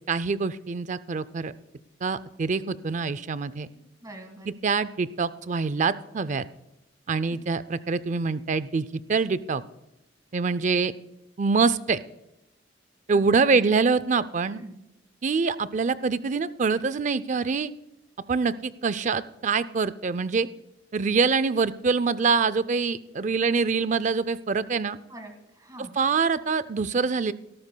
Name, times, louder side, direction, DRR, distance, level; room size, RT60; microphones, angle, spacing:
voice 1, 0.1-1.5 2.0-3.7 4.5-6.4 7.1-9.6 10.3-10.9 11.4-12.0 13.1-14.6 15.2-17.7 18.3-20.5 20.9-25.0 26.0-27.3, right 4 dB, 40° right, 16 dB, 0.4 m, -25 dB
voice 2, 3.7-4.5 7.1-7.4 13.1-13.7 14.4-14.8 25.1-25.9, right 1 dB, 20° right, 5 dB, 1.8 m, -45 dB
18.0 x 13.0 x 2.3 m, 0.90 s
head